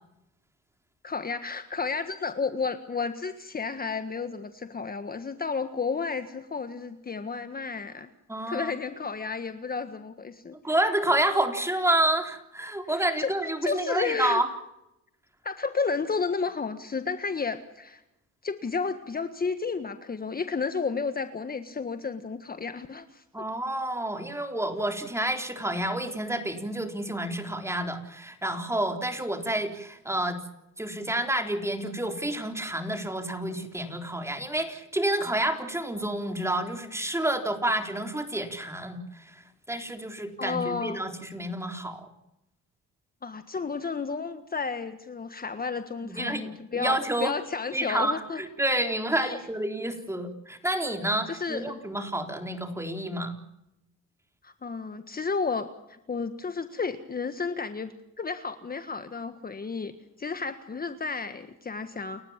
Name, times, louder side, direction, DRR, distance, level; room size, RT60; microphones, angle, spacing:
voice 1, 1.0-8.1 8.5-10.6 12.9-13.3 13.6-14.4 15.4-18.0 18.4-23.4 40.4-41.0 43.2-48.4 49.2-49.4 51.3-51.7 54.4-59.9 60.2-62.2, left 5 dB, 30° left, 9 dB, 1.6 m, -32 dB
voice 2, 8.3-8.7 10.6-14.5 23.3-30.4 30.8-39.4 39.7-42.1 46.0-47.3 47.7-53.3, right 1 dB, 10° right, 5 dB, 3.9 m, -29 dB
30.0 x 15.0 x 7.5 m, 0.88 s
cardioid pair, 90°, 30 cm